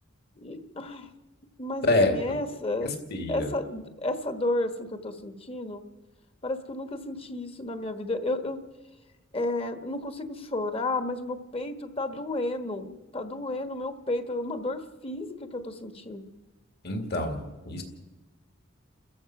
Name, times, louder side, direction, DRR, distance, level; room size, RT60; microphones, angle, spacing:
voice 1, 0.4-1.1 1.6-2.9 3.3-5.8 6.4-8.6 9.3-16.3, left 2 dB, 30° left, 8 dB, 1.3 m, -32 dB
voice 2, 1.8-2.4 2.8-3.5 16.8-17.8, left 2 dB, 55° left, 5 dB, 2.4 m, -27 dB
29.5 x 14.5 x 6.0 m, 1.2 s
head